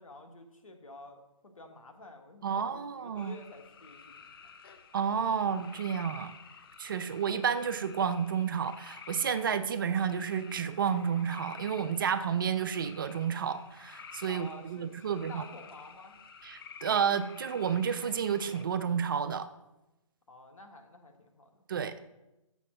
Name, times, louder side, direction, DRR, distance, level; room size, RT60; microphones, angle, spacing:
voice 1, 0.0-4.3 14.2-16.2 20.3-21.7, left 2 dB, 75° left, 5 dB, 1.5 m, -50 dB
voice 2, 2.4-3.3 4.9-6.3 6.8-15.4 16.4-19.5 21.7-21.9, right 7 dB, 40° right, 11 dB, 0.5 m, -31 dB
sound 1, 3.2-18.6, left 6 dB, 45° left, 0.7 m, -51 dB
7.1 x 6.0 x 5.6 m, 0.95 s
hypercardioid pair, 155°, 17 cm